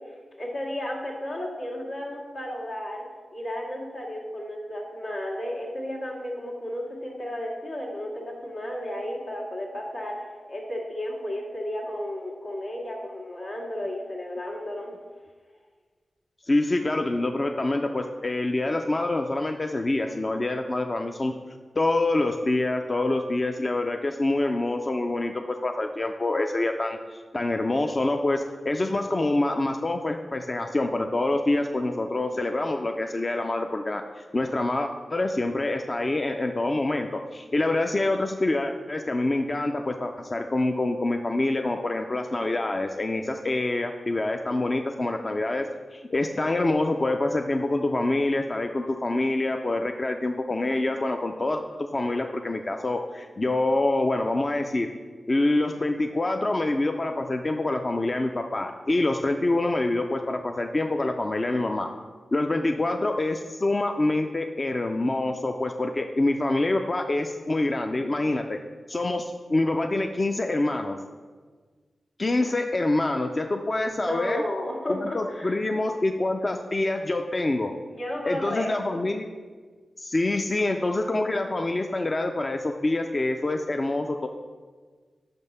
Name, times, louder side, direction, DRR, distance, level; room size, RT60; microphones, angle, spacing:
voice 1, 0.4-3.0 3.3-10.2 10.5-14.9 73.7-75.6 77.9-79.0, left 1 dB, 85° left, -6 dB, 2.1 m, -33 dB
voice 2, 16.4-21.3 21.8-54.9 55.3-61.9 62.3-68.6 68.9-71.0 72.2-74.4 74.9-77.7 78.2-79.3 80.0-84.3, left 2 dB, 40° left, 4 dB, 0.4 m, -26 dB
5.8 x 5.3 x 5.5 m, 1.5 s
cardioid pair, 45°, 0 cm